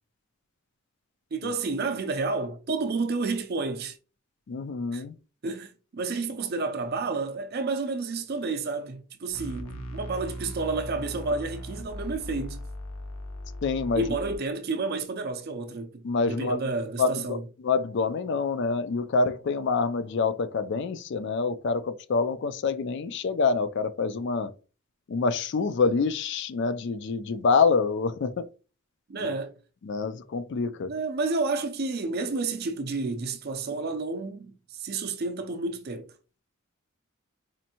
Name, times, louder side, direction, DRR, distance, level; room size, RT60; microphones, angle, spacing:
voice 1, 1.3-4.0 4.9-5.0 5.4-12.7 13.9-17.5 29.1-29.6 30.9-36.1, right 3 dB, 45° right, 0.5 m, -30 dB
voice 2, 4.5-5.1 13.6-14.0 16.0-16.6 17.0-17.1 17.6-24.5 25.1-28.4 29.1-29.3 29.8-30.9, left 4 dB, 55° left, 0.3 m, -26 dB
sound 1, 9.3-14.4, equal, 75° left, 0.7 m, -38 dB
4.3 x 2.5 x 2.9 m
head